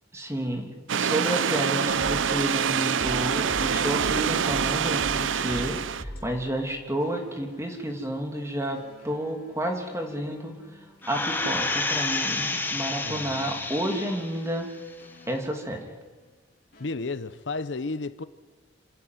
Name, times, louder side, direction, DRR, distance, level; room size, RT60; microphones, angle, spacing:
voice 1, 0.1-10.5 11.1-14.7 15.3-15.9, right 1 dB, 15° right, 2.7 m, -30 dB
sound 1, 0.9-6.0, right 7 dB, 80° right, 0.6 m, -26 dB
sound 2, 1.9-7.9 8.7-12.0 12.8-15.9 16.7-16.9, equal, 50° left, 3.6 m, -43 dB
sound 3, 11.0-14.4 14.9-15.0, left 2 dB, 10° left, 1.4 m, -29 dB
voice 2, 13.0-13.7 16.8-18.2, left 3 dB, 70° left, 0.8 m, -33 dB
27.0 x 10.5 x 9.4 m
head